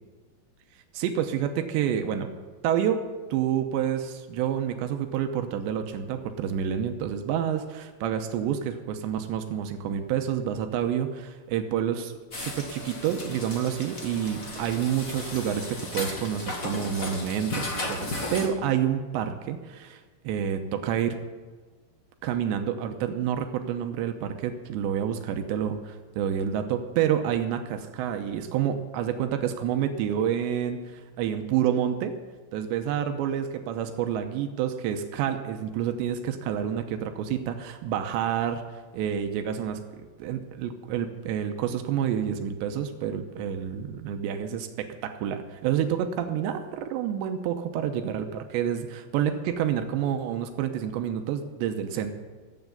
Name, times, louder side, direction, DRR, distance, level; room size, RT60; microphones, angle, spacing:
voice 1, 0.9-2.3 2.6-3.0 3.3-21.2 22.2-32.1 32.5-38.6 38.9-39.8 40.2-52.2, right 9 dB, 85° right, 7 dB, 3.1 m, -28 dB
sound 1, 12.3-18.5, left 2 dB, 75° left, 0.7 m, -35 dB
14.5 x 8.1 x 9.1 m, 1.4 s
omnidirectional pair, 5.2 m